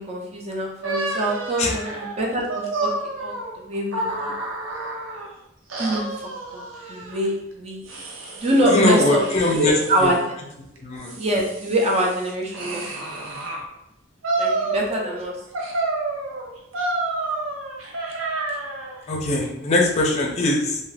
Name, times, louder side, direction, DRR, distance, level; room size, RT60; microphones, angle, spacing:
voice 1, 0.0-2.9 3.2-4.3 5.8-6.6 6.9-7.9 8.3-10.2 11.2-12.9 13.1-13.2 14.4-15.3, right 1 dB, 35° right, -1 dB, 0.6 m, -24 dB
sound 1, 0.8-5.3 5.7-7.2 7.8-8.8 9.2-10.2 10.8-13.6 14.2-15.2 15.5-19.0, right 2 dB, 80° right, 0.6 m, -29 dB
voice 2, 8.7-9.7 10.0-10.1 10.8-11.1 19.1-20.8, left 2 dB, 35° left, 0 dB, 0.5 m, -21 dB
2.7 x 2.4 x 3.2 m, 0.86 s
head